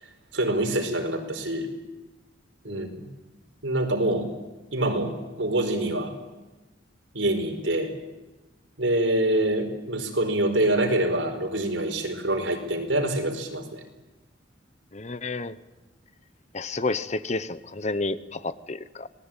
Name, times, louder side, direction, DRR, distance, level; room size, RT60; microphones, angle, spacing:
voice 1, 0.3-1.7 2.6-3.1 3.6-4.3 4.7-5.1 5.4-6.1 7.1-7.9 8.8-13.8, right 1 dB, 80° right, 4 dB, 4.9 m, -25 dB
voice 2, 2.7-3.0 14.9-15.5 16.5-19.1, left 3 dB, 35° left, 14 dB, 0.9 m, -31 dB
27.0 x 19.5 x 9.0 m, 1.1 s
head